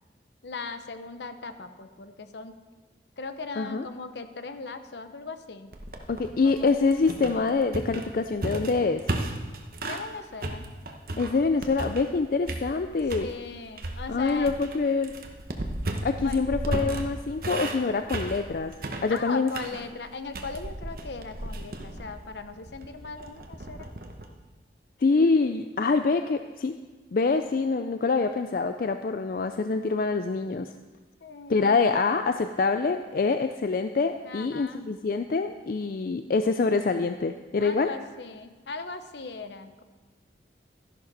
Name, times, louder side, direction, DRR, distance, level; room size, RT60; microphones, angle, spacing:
voice 1, 0.4-2.5 3.2-5.7 6.4-6.7 9.8-10.6 13.2-14.5 16.2-16.4 19.1-23.9 31.2-32.1 34.2-34.9 37.6-39.8, left 4 dB, 70° left, 9 dB, 0.8 m, -38 dB
voice 2, 3.6-3.9 6.1-9.0 11.2-13.3 14.1-15.1 16.0-18.7 19.0-19.5 25.0-26.8 27.1-30.7 31.5-37.9, left 4 dB, 50° left, 8 dB, 0.4 m, -25 dB
sound 1, 5.7-10.1 10.4-12.2 12.5-13.3 13.8-24.2, right 1 dB, 50° right, 1.1 m, -35 dB
13.5 x 11.0 x 4.1 m, 1.3 s
head